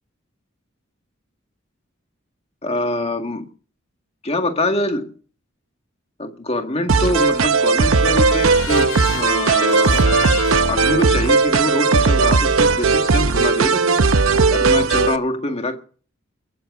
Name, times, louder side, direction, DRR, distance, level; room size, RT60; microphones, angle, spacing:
voice 1, 2.6-3.5 4.2-5.1 6.2-10.1 10.6-14.0 14.5-15.8, left 1 dB, 30° left, 1.9 m, -24 dB
sound 1, 6.9-15.2, right 4 dB, 85° right, 0.8 m, -17 dB
Trumpet, 7.3-13.5, left 6 dB, 85° left, 1.8 m, -32 dB
23.0 x 8.0 x 5.4 m
head